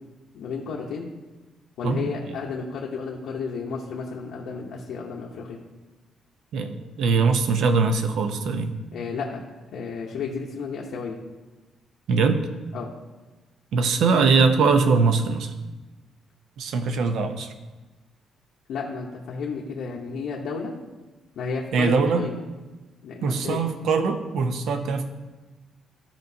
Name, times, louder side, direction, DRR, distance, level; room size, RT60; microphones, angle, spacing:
voice 1, 0.3-1.1 1.8-5.6 8.9-9.4 9.7-11.2 12.7-12.9 18.7-20.7 21.4-22.4 23.0-23.6, left 5 dB, 70° left, -3 dB, 0.8 m, -32 dB
voice 2, 6.5-8.8 12.1-12.5 13.7-15.5 16.6-17.5 21.7-22.3 23.2-25.1, right 4 dB, 70° right, 8 dB, 0.7 m, -22 dB
13.0 x 5.2 x 2.7 m, 1.2 s
cardioid pair, 145°, 0 cm